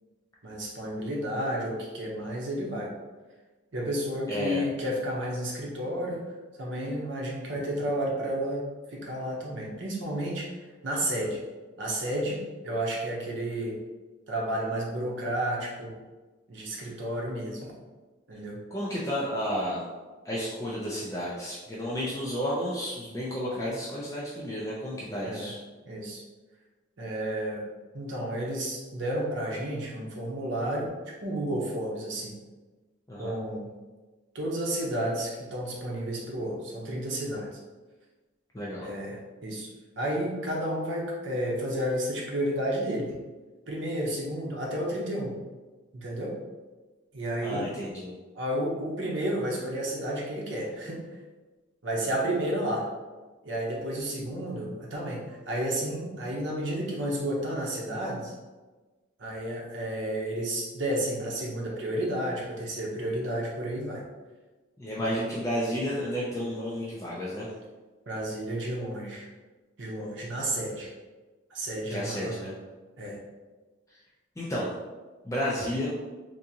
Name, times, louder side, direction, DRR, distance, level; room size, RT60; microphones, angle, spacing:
voice 1, 0.4-2.9 3.7-6.2 6.6-10.5 10.8-11.4 11.8-13.8 14.3-15.9 16.5-17.7 18.3-18.6 25.2-25.5 25.9-26.2 27.0-27.6 27.9-30.9 31.2-32.3 33.2-33.7 34.3-37.5 38.8-39.7 40.0-43.1 43.7-45.4 45.9-46.3 47.1-47.7 48.3-51.0 51.8-52.9 53.4-58.4 59.2-64.0 65.0-65.1 68.1-69.3 69.8-70.9 71.5-72.4 73.0-73.2, right 1 dB, 65° right, -2 dB, 0.8 m, -31 dB
voice 2, 4.3-4.6 16.8-16.9 18.7-19.8 20.2-25.6 33.1-33.3 38.5-38.9 47.4-48.1 52.0-52.1 64.8-67.5 71.9-72.5 74.4-74.7 75.2-75.9, equal, 15° left, -7 dB, 0.4 m, -32 dB
3.5 x 2.6 x 2.8 m, 1.3 s
head